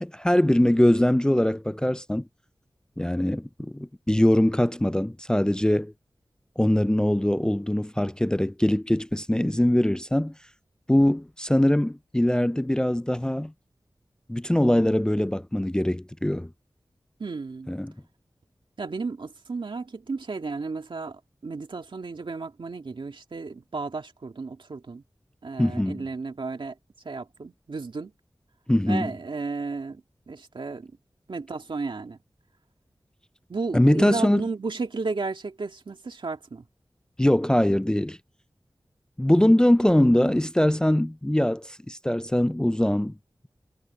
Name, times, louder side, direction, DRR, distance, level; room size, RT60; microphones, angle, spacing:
voice 1, 0.0-2.2 3.0-3.5 3.7-5.9 6.6-10.3 10.9-13.5 14.3-16.5 17.7-17.9 25.6-26.0 28.7-29.1 33.7-34.4 37.2-38.2 39.2-43.1, left 1 dB, 10° left, 0.3 m, -22 dB
voice 2, 17.2-17.7 18.8-25.0 25.4-26.8 27.0-28.1 28.9-30.0 30.3-30.9 31.3-32.2 33.5-36.6, right 4 dB, 85° right, 2.1 m, -33 dB
wide cardioid pair, 65°, 8 cm